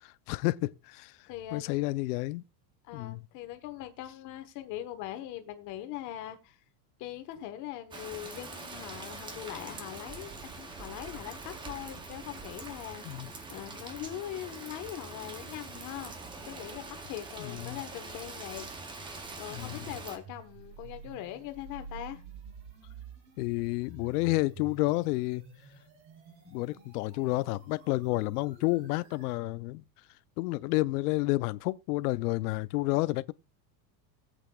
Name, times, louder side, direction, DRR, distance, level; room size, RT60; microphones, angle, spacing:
voice 1, 0.3-1.1 1.5-2.4 2.9-3.2 13.1-13.3 17.4-17.8 19.5-19.9 23.4-25.4 26.5-29.8 30.4-33.3, left 20 dB, 65° left, 0.7 m, -30 dB
voice 2, 1.3-1.8 2.8-6.6 7.0-13.0 13.5-16.1 16.4-18.7 19.4-22.2, left 12 dB, 35° left, 1.3 m, -41 dB
Rain, 7.9-20.2, right 3 dB, 10° right, 0.6 m, -44 dB
sound 1, 17.9-29.4, right 4 dB, 40° right, 5.2 m, -51 dB
20.0 x 8.2 x 2.3 m
supercardioid pair, 170°, 50 cm